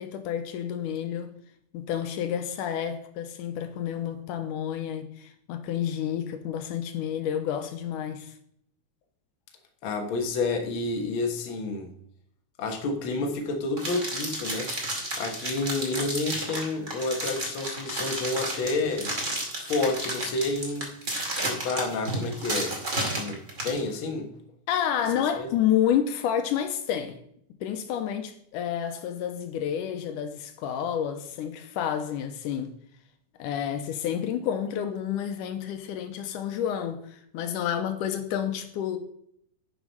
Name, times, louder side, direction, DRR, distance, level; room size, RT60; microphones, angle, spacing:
voice 1, 0.0-1.3 1.7-8.3 24.7-27.2 27.6-32.7 33.4-39.0, left 9 dB, 85° left, 2.3 m, -29 dB
voice 2, 9.8-11.9 12.6-19.1 19.7-20.9 21.4-22.8 23.1-24.3 25.3-25.5, left 3 dB, 50° left, 1.7 m, -30 dB
sound 1, 13.8-23.8, right 1 dB, 25° right, 2.3 m, -32 dB
11.0 x 6.2 x 5.5 m
omnidirectional pair, 3.7 m